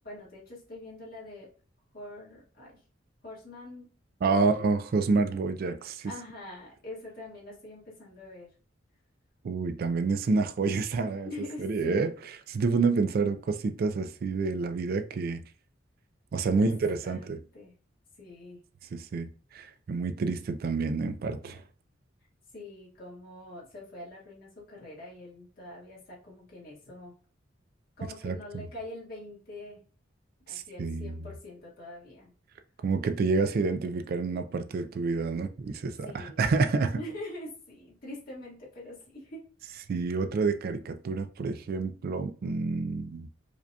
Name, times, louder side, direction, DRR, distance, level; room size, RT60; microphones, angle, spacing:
voice 1, 0.0-1.5 1.9-2.8 3.2-3.9 4.3-4.7 6.0-8.5 11.2-12.1 16.4-16.7 17.0-17.7 18.2-18.7 22.5-27.1 28.0-29.8 30.5-32.3 36.0-36.5 37.0-39.4, left 1 dB, 50° left, 1.7 m, -44 dB
voice 2, 4.2-6.1 9.4-11.3 11.6-12.1 12.5-15.4 16.3-17.4 18.9-21.6 28.2-28.6 30.5-31.2 32.8-37.0 39.9-43.3, right 4 dB, 50° right, 0.3 m, -28 dB
4.9 x 2.7 x 2.2 m
head